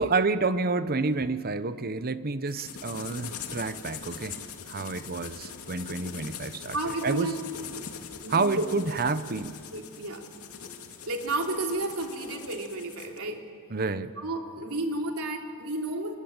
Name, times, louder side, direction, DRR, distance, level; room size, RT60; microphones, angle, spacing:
voice 1, 0.0-4.4 4.7-6.7 7.0-7.3 8.3-9.5 13.7-14.1, right 3 dB, 45° right, 13 dB, 1.0 m, -29 dB
sound 1, 2.5-13.2, left 6 dB, 80° left, 2.4 m, -42 dB
voice 2, 6.7-7.3 8.2-8.7 9.7-10.2 11.1-13.4 14.2-16.2, right 2 dB, 85° right, 2 dB, 3.3 m, -32 dB
28.0 x 23.0 x 9.0 m, 2.2 s
head